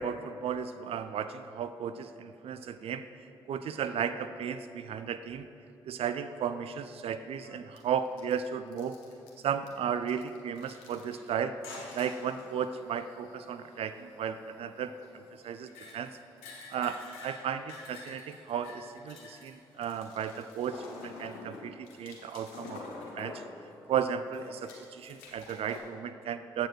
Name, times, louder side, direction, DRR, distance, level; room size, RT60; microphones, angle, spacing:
voice 1, 0.0-3.1 3.5-5.5 5.8-9.0 9.4-11.6 11.9-16.2 16.7-22.8 23.1-23.4 23.9-26.7, right 7 dB, 60° right, 11 dB, 0.4 m, -34 dB
sound 1, 7.0-7.1 7.4-7.8 8.0-8.5 8.7-9.7 10.0-11.3 11.6-24.0 24.3-25.8, left 3 dB, 85° left, 1.1 m, -48 dB
7.7 x 6.7 x 4.4 m, 2.7 s
hypercardioid pair, 45°, 11 cm